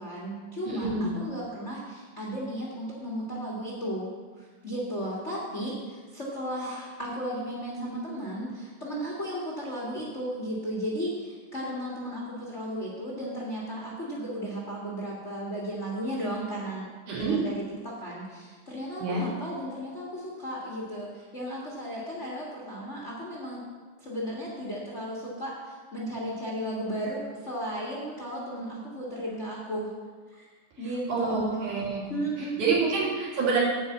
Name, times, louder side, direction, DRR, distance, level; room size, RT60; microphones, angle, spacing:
voice 1, 0.0-4.1 4.4-16.9 17.1-23.6 24.0-29.9 30.3-30.4 30.8-31.7 32.1-32.8, equal, 30° left, -4 dB, 1.6 m, -35 dB
voice 2, 0.7-1.1 17.1-17.4 19.0-19.3 31.1-32.0 32.6-33.6, right 4 dB, 75° right, -6 dB, 4.2 m, -27 dB
9.4 x 5.7 x 8.4 m, 1.4 s
omnidirectional pair, 3.6 m